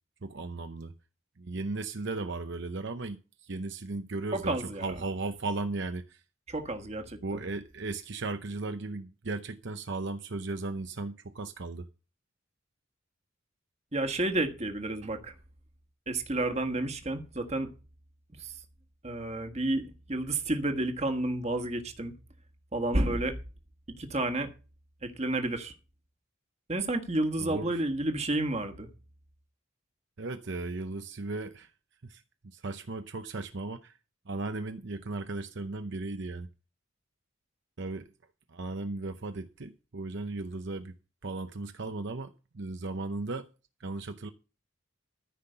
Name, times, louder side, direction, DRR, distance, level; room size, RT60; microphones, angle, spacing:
voice 1, 0.2-0.9 1.4-6.2 7.2-11.9 27.4-27.8 30.2-31.7 32.0-34.0 34.3-36.5 37.8-38.1 38.5-40.9 41.2-43.5 43.8-44.3, right 3 dB, 60° right, 0.7 m, -36 dB
voice 2, 4.3-4.9 6.5-7.4 13.9-15.3 16.1-17.7 18.4-18.5 19.0-22.1 22.7-23.4 24.0-24.5 25.0-25.7 26.7-28.9, right 2 dB, 30° right, 1.5 m, -30 dB
14.0 x 5.8 x 6.7 m
head